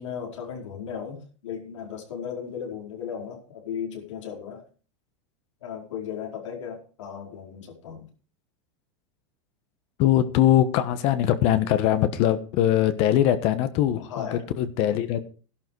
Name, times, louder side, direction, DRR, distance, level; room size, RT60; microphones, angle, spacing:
voice 1, 0.0-4.6 5.6-8.1 14.1-14.4, left 7 dB, 90° left, 4.7 m, -36 dB
voice 2, 10.0-15.3, left 12 dB, 40° left, 1.2 m, -22 dB
14.5 x 11.5 x 4.7 m
supercardioid pair, 155°, 15 cm